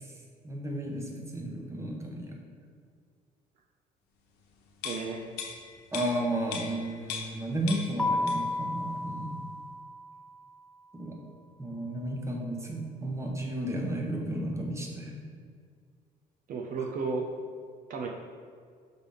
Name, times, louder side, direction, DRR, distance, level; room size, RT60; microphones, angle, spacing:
voice 1, 0.4-2.4 5.9-9.4 10.9-11.2 11.6-15.1, right 1 dB, 15° right, 0 dB, 1.1 m, -33 dB
sound 1, 4.8-7.4 7.7-8.6 9.0-9.1, left 6 dB, 85° left, 0.9 m, -39 dB
voice 2, 4.8-5.2 16.5-17.3 17.9-18.1, right 4 dB, 55° right, 1 dB, 0.7 m, -33 dB
Keyboard (musical), 8.0-10.6, left 2 dB, 5° left, 0.4 m, -33 dB
5.9 x 3.5 x 5.5 m, 2.1 s
cardioid pair, 110°, 17 cm